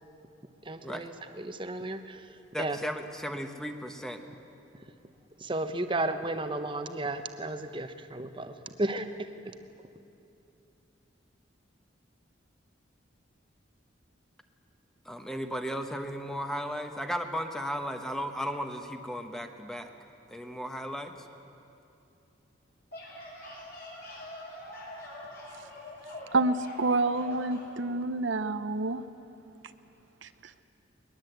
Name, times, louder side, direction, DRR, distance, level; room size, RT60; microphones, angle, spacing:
voice 1, 0.6-2.2 2.6-2.8 5.4-9.5, right 2 dB, 25° right, 9 dB, 0.9 m, -34 dB
voice 2, 2.5-4.2 15.0-19.9 20.3-21.1, equal, 5° left, 6 dB, 1.0 m, -35 dB
sound 1, 22.7-27.7, left 1 dB, 55° left, 6.9 m, -44 dB
voice 3, 26.3-29.0 30.2-30.3, right 2 dB, 80° right, 10 dB, 0.8 m, -28 dB
21.0 x 20.5 x 8.1 m, 2.8 s
head